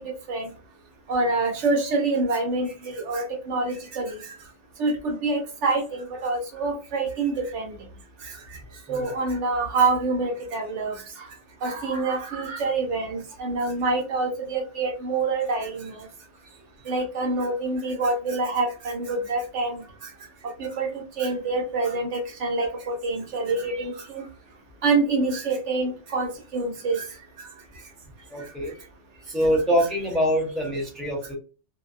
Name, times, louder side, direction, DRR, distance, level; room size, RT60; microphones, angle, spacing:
voice 1, 1.1-4.2 4.8-7.7 8.2-8.4 8.9-11.2 11.6-16.1 16.9-19.8 20.6-24.2 24.8-27.0, right 3 dB, 75° right, 1 dB, 1.1 m, -26 dB
voice 2, 28.3-28.8 29.2-31.3, equal, ahead, -2 dB, 0.7 m, -24 dB
2.6 x 2.2 x 2.3 m, 0.35 s
omnidirectional pair, 1.2 m